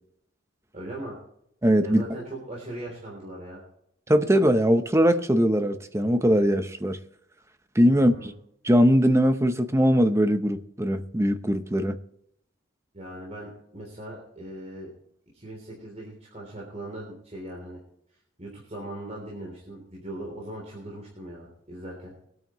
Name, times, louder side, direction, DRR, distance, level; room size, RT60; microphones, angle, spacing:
voice 1, 0.7-1.2 1.8-3.6 7.9-8.3 12.9-14.9 15.3-17.8 18.4-22.1, right 1 dB, 35° right, -3 dB, 3.4 m, -39 dB
voice 2, 1.6-2.0 4.1-7.0 7.7-8.3 8.6-12.0, equal, 15° right, 9 dB, 0.8 m, -21 dB
22.5 x 9.1 x 3.1 m, 0.74 s
head